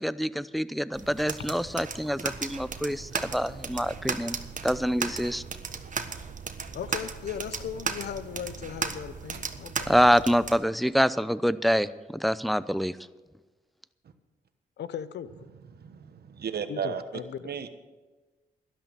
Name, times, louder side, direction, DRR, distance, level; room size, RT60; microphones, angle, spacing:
voice 1, 0.0-4.4 4.6-5.4 9.9-13.0, equal, ahead, 15 dB, 0.7 m, -26 dB
sound 1, 0.9-10.6, right 5 dB, 50° right, 1.3 m, -36 dB
sound 2, 2.5-10.5, right 8 dB, 85° right, 1.0 m, -47 dB
voice 2, 6.7-9.9 14.8-15.3 16.7-17.5, left 9 dB, 75° left, 15 dB, 0.8 m, -37 dB
voice 3, 15.7-17.0 17.4-17.7, right 7 dB, 65° right, 9 dB, 1.2 m, -34 dB
12.5 x 11.5 x 6.8 m, 1.2 s
supercardioid pair, 50°, 17 cm